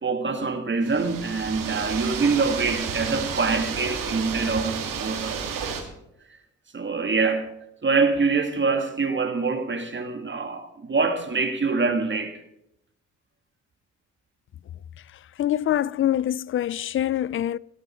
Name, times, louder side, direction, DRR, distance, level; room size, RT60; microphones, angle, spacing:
voice 1, 0.0-5.8 6.7-7.5 7.8-12.4, right 4 dB, 35° right, 2.3 m, -25 dB
sound 1, 0.8-5.8, right 6 dB, 85° right, 2.5 m, -31 dB
voice 2, 15.4-17.6, left 11 dB, 40° left, 0.4 m, -24 dB
16.5 x 11.5 x 4.5 m
cardioid pair, 70°, 32 cm